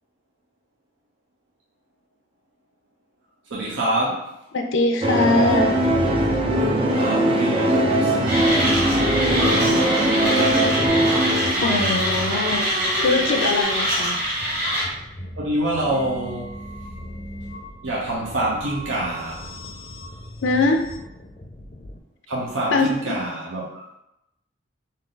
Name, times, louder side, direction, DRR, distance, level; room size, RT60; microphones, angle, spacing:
voice 1, 3.5-4.3 6.9-10.0 15.4-16.6 17.8-19.5 22.3-23.8, right 1 dB, 80° right, -5 dB, 0.8 m, -27 dB
voice 2, 4.5-5.9 11.6-12.7 13.0-14.3 20.4-20.9 22.7-22.9, left 3 dB, 80° left, 4 dB, 0.4 m, -22 dB
sound 1, 5.0-13.6, right 1 dB, 30° right, 0.4 m, -21 dB
Mechanisms, 8.3-14.8, equal, 50° right, 1.2 m, -24 dB
sound 2, 8.8-22.0, equal, 30° left, 0.5 m, -39 dB
3.6 x 2.7 x 3.8 m, 0.86 s
head